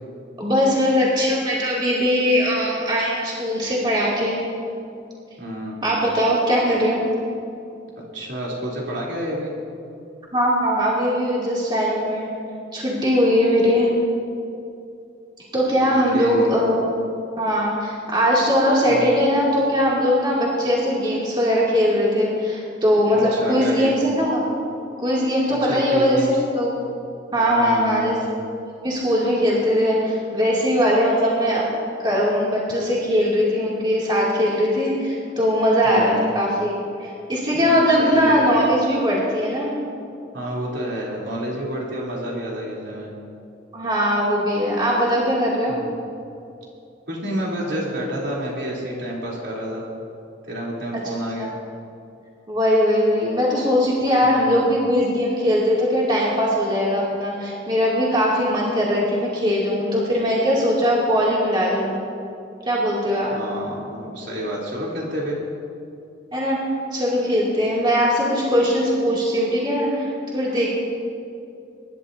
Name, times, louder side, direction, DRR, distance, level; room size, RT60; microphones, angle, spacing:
voice 1, 0.4-4.4 5.8-7.0 10.3-12.3 12.7-13.9 15.5-16.9 17.4-24.4 25.0-26.8 27.3-28.1 28.8-31.7 32.0-39.7 43.7-45.8 51.4-51.5 52.5-61.9 62.7-63.3 66.3-66.6 66.9-70.7, equal, 25° right, -6 dB, 2.7 m, -20 dB
voice 2, 5.4-5.8 8.1-9.5 15.8-16.5 18.9-19.0 23.1-24.0 25.6-26.4 27.3-28.2 35.8-36.3 37.7-38.4 40.3-43.1 45.7-46.0 47.1-49.9 50.4-51.5 54.2-54.6 63.3-65.4, right 1 dB, 70° right, -4 dB, 3.5 m, -29 dB
25.0 x 11.5 x 2.8 m, 2.6 s
head